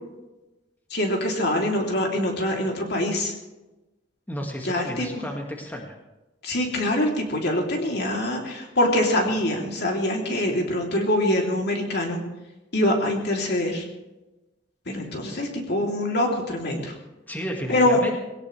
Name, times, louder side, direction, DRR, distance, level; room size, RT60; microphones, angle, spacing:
voice 1, 0.9-3.3 4.6-5.1 6.4-12.2 12.7-13.8 14.9-16.9 17.7-18.0, left 1 dB, 60° left, 0 dB, 3.3 m, -24 dB
voice 2, 4.3-5.9 17.3-18.2, equal, 10° left, 0 dB, 2.0 m, -32 dB
19.5 x 18.0 x 3.4 m, 1.1 s
head